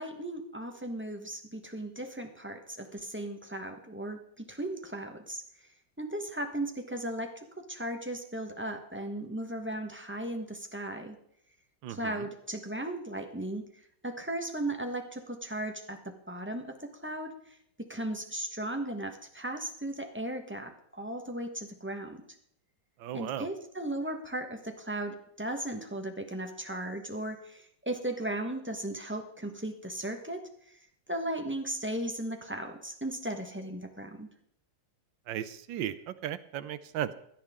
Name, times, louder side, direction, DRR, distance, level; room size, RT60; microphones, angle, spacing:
voice 1, 0.0-5.4 6.0-11.2 11.9-13.7 14.0-22.2 23.1-30.8 31.1-34.3, right 1 dB, 10° right, 4 dB, 0.8 m, -36 dB
voice 2, 11.8-12.1 23.0-23.5 35.3-37.1, right 11 dB, 85° right, 14 dB, 1.5 m, -36 dB
17.0 x 11.5 x 3.6 m, 0.71 s
omnidirectional pair, 2.0 m